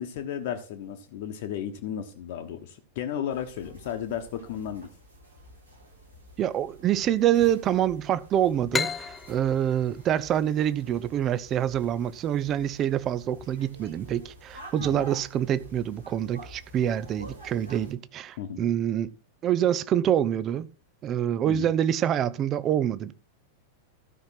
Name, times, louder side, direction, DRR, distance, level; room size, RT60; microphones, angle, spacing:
voice 1, 0.0-4.9 14.8-15.0 18.4-18.7 21.5-21.7, left 9 dB, 50° left, 1.3 m, -34 dB
sound 1, 3.3-17.9, right 1 dB, 90° right, 6.5 m, -49 dB
voice 2, 6.4-19.1 19.4-20.7 21.0-23.1, right 10 dB, 30° right, 0.7 m, -26 dB
sound 2, 8.7-12.1, left 5 dB, 15° left, 0.5 m, -34 dB
12.5 x 5.7 x 6.0 m
figure-of-eight pair, 90°, 0 cm